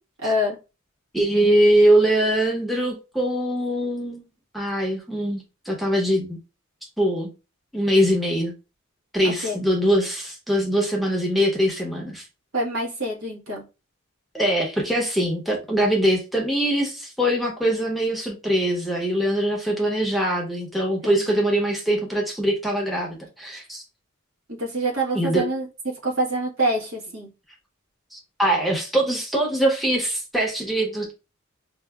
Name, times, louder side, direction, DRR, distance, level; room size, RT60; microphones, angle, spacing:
voice 1, 0.2-0.6 9.2-9.6 12.5-13.6 21.0-21.4 24.5-25.7 26.0-27.3, right 1 dB, 70° right, 1.3 m, -26 dB
voice 2, 1.1-4.2 4.5-6.4 7.0-7.3 7.7-8.5 9.1-12.2 14.3-23.8 25.1-25.4 28.1-31.1, right 1 dB, ahead, 0.7 m, -22 dB
4.6 x 2.4 x 2.2 m
head